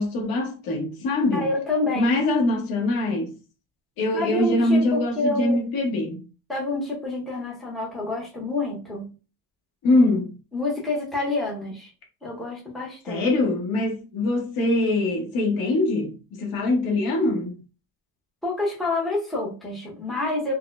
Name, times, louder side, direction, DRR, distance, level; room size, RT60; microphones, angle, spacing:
voice 1, 0.0-1.5 1.9-3.4 4.0-6.2 9.8-10.4 13.1-17.6, left 2 dB, 50° left, 1.0 m, -23 dB
voice 2, 1.3-2.1 4.1-5.6 6.5-9.1 10.5-11.9 12.2-13.2 18.4-20.5, left 2 dB, ahead, 0.7 m, -28 dB
4.1 x 2.0 x 2.4 m
cardioid pair, 175°, 47 cm